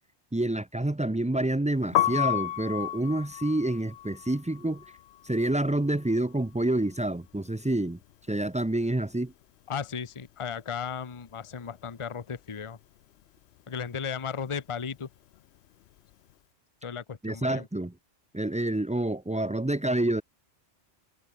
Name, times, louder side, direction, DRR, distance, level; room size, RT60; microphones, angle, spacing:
voice 1, 0.3-4.8 5.2-8.0 8.3-9.3 17.2-17.9 18.3-20.2, right 1 dB, 10° right, 0.4 m, -28 dB
Piano, 1.8-7.8 8.0-9.6 9.9-16.3, left 12 dB, 65° left, 0.8 m, -34 dB
voice 2, 9.7-12.8 13.7-15.1 16.8-17.7, left 6 dB, 30° left, 0.9 m, -35 dB
omnidirectional pair, 1.2 m